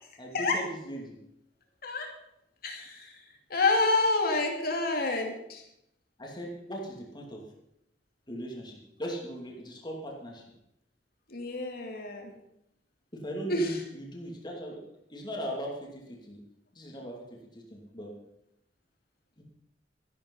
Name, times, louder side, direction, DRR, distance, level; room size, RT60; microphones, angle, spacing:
voice 1, 0.2-1.2 6.2-7.5 8.3-10.4 13.1-14.8 15.1-16.4 16.7-18.1 19.4-19.5, equal, 25° left, -1 dB, 2.8 m, -39 dB
voice 2, 2.6-3.2 3.5-5.6 11.3-12.3 13.5-13.8, left 2 dB, 60° left, 2 dB, 2.6 m, -28 dB
13.0 x 11.5 x 5.6 m, 0.79 s
head